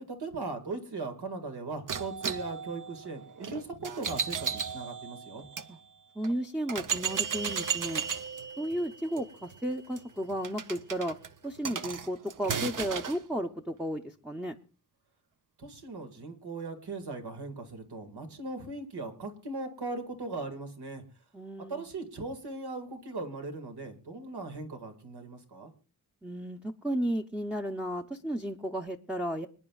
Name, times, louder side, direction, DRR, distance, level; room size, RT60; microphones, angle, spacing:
voice 1, 0.1-5.4 15.6-21.0 21.7-25.7, right 3 dB, 85° right, 5 dB, 2.0 m, -39 dB
sound 1, 1.9-5.7 6.2-6.3 6.7-13.2, right 6 dB, 55° right, 0.7 m, -35 dB
voice 2, 6.2-8.0 8.6-11.2 11.4-14.5 21.3-21.8 26.2-29.5, right 1 dB, 5° right, 1 dB, 0.6 m, -33 dB
26.0 x 9.9 x 2.3 m, 0.35 s
wide cardioid pair, 110°, 38 cm